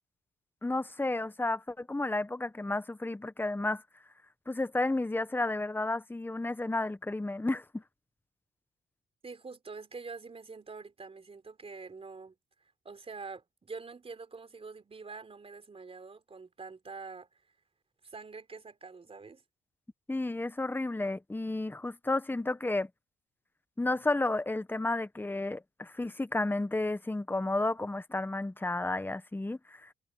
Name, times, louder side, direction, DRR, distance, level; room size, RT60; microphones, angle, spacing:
voice 1, 0.6-3.8 4.5-7.8 20.1-22.9 23.8-29.9, left 2 dB, 10° left, 1.2 m, -32 dB
voice 2, 9.2-12.3 12.8-17.3 18.0-19.4, right 4 dB, 30° right, 3.8 m, -45 dB
cardioid pair, 90°, 20 cm